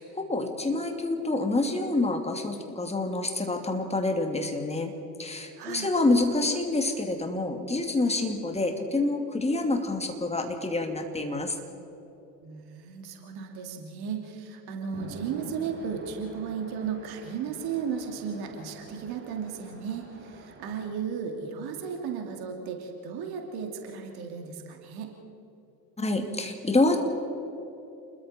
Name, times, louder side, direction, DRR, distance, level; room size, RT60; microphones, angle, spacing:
voice 1, 0.0-4.9 5.2-11.6 26.0-27.0, left 2 dB, 10° left, 4 dB, 2.7 m, -27 dB
voice 2, 5.6-5.9 12.4-25.1, right 6 dB, 50° right, 3 dB, 2.9 m, -35 dB
Chatter / Traffic noise roadway noise / Train, 14.9-20.9, right 2 dB, 25° right, 4.5 m, -46 dB
28.5 x 22.0 x 4.4 m, 3.0 s
figure-of-eight pair, 65°, 49 cm